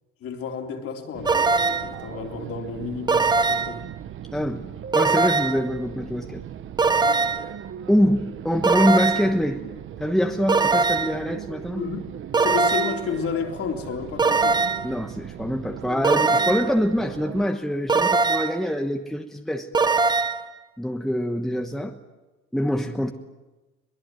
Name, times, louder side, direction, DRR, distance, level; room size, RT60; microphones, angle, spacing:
voice 1, 0.2-3.8 11.8-14.6, left 6 dB, 50° left, 3.6 m, -32 dB
sound 1, 1.1-17.5, right 9 dB, 45° right, 1.0 m, -38 dB
sound 2, 1.3-2.0 3.1-3.8 4.9-5.7 6.8-7.5 8.6-9.4 10.5-11.2 12.3-13.1 14.2-14.9 16.0-16.8 17.9-18.6 19.7-20.5, right 4 dB, 15° right, 0.7 m, -21 dB
voice 2, 4.3-4.7 4.9-6.4 7.9-9.6 10.0-11.8 14.8-19.7 20.8-22.0 22.5-23.1, equal, ahead, 1.2 m, -24 dB
22.5 x 21.0 x 9.2 m
cardioid pair, 130°, 29 cm